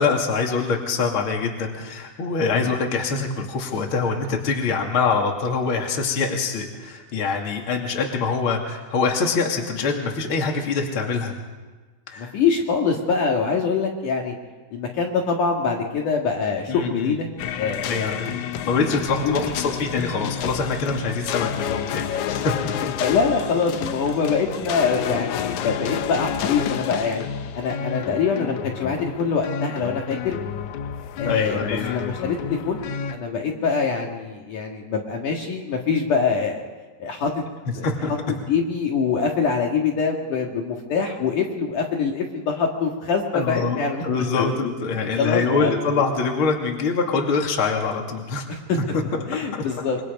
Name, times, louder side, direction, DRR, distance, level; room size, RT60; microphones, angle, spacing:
voice 1, 0.0-11.4 12.1-12.3 16.7-17.2 17.9-22.7 31.2-32.0 37.8-38.1 43.3-48.4 48.9-49.0, left 4 dB, 35° left, 1 dB, 3.0 m, -24 dB
voice 2, 12.2-14.3 14.7-17.3 17.5-18.5 19.2-19.7 23.0-27.3 27.5-30.4 31.2-32.8 33.1-36.6 37.0-37.4 37.7-37.9 38.3-44.0 44.4-44.5 45.1-45.8 48.5-48.8 49.3-50.0, left 5 dB, 60° left, 0 dB, 3.1 m, -24 dB
sound 1, 17.4-33.2, left 9 dB, 75° left, 1.7 m, -30 dB
26.5 x 24.5 x 5.3 m, 1.3 s
omnidirectional pair, 4.5 m